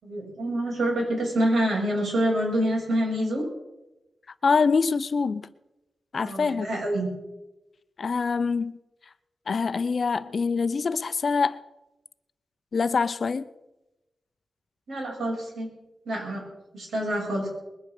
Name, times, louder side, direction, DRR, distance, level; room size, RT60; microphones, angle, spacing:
voice 1, 0.0-3.4 6.1-7.1 14.9-15.7 16.1-16.4 16.7-17.5, right 1 dB, 80° right, -2 dB, 7.1 m, -26 dB
voice 2, 4.4-5.5 6.1-6.7 8.0-8.7 9.5-11.6 12.7-13.5, left 5 dB, 55° left, 14 dB, 0.6 m, -25 dB
21.0 x 8.8 x 6.7 m, 0.98 s
wide cardioid pair, 120°, 0 cm